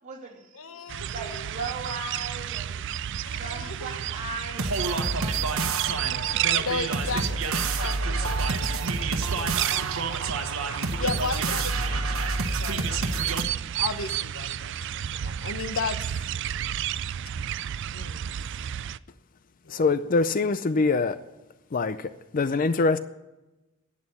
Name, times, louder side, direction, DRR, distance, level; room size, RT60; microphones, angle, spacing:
voice 1, 0.0-0.8 1.1-2.9 3.3-6.3 7.0-7.2, right 3 dB, 35° right, 3.1 m, -38 dB
voice 2, 0.5-1.5 3.3-4.0 6.4-8.8 9.3-9.6 11.0-13.4 13.7-16.0 16.2-16.3 17.9-18.2 19.6-19.8, left 4 dB, 80° left, 0.9 m, -35 dB
sound 1, 0.9-19.0, right 10 dB, 60° right, 0.4 m, -32 dB
sound 2, 4.6-13.4, right 3 dB, 85° right, 1.2 m, -28 dB
voice 3, 19.7-21.2 21.7-23.0, left 3 dB, 40° left, 0.4 m, -24 dB
11.0 x 8.5 x 9.7 m
head